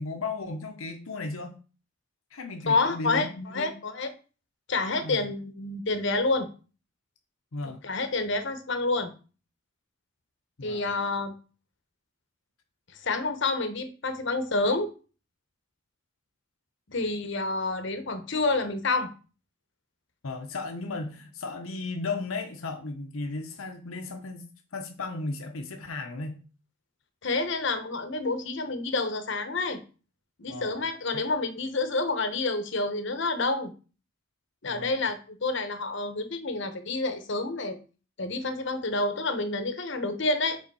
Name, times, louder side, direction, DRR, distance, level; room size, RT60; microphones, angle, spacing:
voice 1, 0.0-1.5 2.3-3.8 5.0-5.3 7.5-7.8 10.6-10.9 20.2-24.4 24.7-26.4 30.5-30.8 31.1-31.2 34.6-35.0, left 3 dB, 90° left, 4 dB, 0.9 m, -35 dB
voice 2, 2.7-4.1 4.7-6.5 7.6-9.1 10.6-11.3 13.0-14.9 16.9-19.1 27.2-29.8 30.4-33.7 34.6-37.8 38.2-40.6, left 3 dB, 60° left, 9 dB, 1.0 m, -28 dB
5.3 x 3.9 x 5.4 m, 0.36 s
head